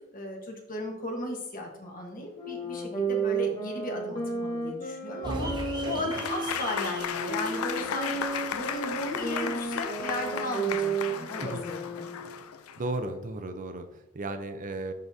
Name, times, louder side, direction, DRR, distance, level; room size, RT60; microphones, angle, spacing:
voice 1, 0.1-11.8, left 1 dB, 40° left, 1 dB, 1.3 m, -36 dB
sound 1, 2.3-12.3, right 4 dB, 25° left, 1.6 m, -33 dB
sound 2, 5.2-10.3, right 1 dB, 20° right, 0.9 m, -40 dB
Applause / Crowd, 6.1-12.9, left 7 dB, 85° left, 0.4 m, -35 dB
voice 2, 12.8-14.9, right 2 dB, 40° right, 8 dB, 0.6 m, -35 dB
10.5 x 3.8 x 2.7 m, 0.93 s
head